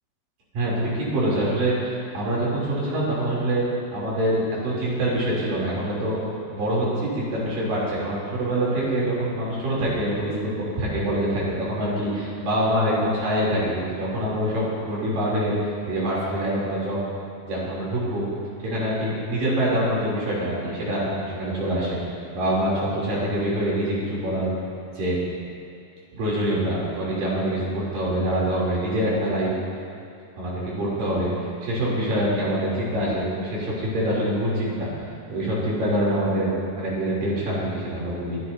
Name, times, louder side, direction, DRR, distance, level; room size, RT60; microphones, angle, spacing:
voice 1, 0.5-3.6 3.9-6.2 6.5-17.0 17.4-18.3 18.6-24.5 24.9-25.2 26.1-29.5 30.4-38.4, right 1 dB, 60° right, -7 dB, 5.0 m, -25 dB
27.5 x 11.5 x 2.8 m, 2.5 s
omnidirectional pair, 4.4 m